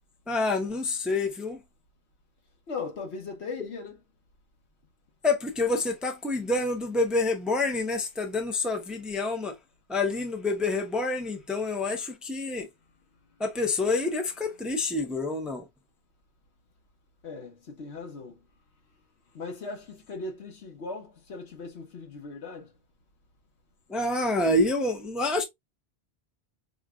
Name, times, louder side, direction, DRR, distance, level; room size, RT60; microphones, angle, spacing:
voice 1, 0.3-1.6 5.2-9.6 9.9-12.7 13.4-15.7 23.9-25.4, left 2 dB, ahead, 0.6 m, -27 dB
voice 2, 2.7-4.0 17.2-18.4 19.3-22.7, left 4 dB, 80° left, 1.3 m, -38 dB
5.1 x 2.4 x 2.4 m
omnidirectional pair, 1.1 m